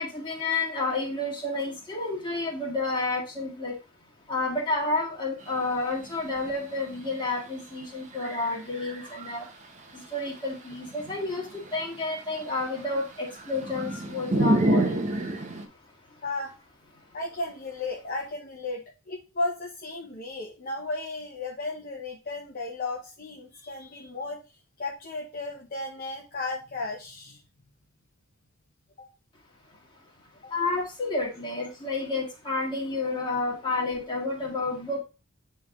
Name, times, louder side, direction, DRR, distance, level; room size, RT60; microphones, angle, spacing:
voice 1, 0.0-3.8 4.3-9.5 9.9-15.6 30.5-35.0, left 2 dB, 20° left, -2 dB, 1.8 m, -30 dB
sound 1, 5.4-5.5 5.8-7.6 8.1-9.7 10.3-15.7, right 1 dB, 35° right, 0.8 m, -29 dB
voice 2, 17.1-24.4 24.8-27.4, left 2 dB, 45° left, -1 dB, 0.8 m, -34 dB
8.5 x 3.4 x 3.5 m, 0.31 s
head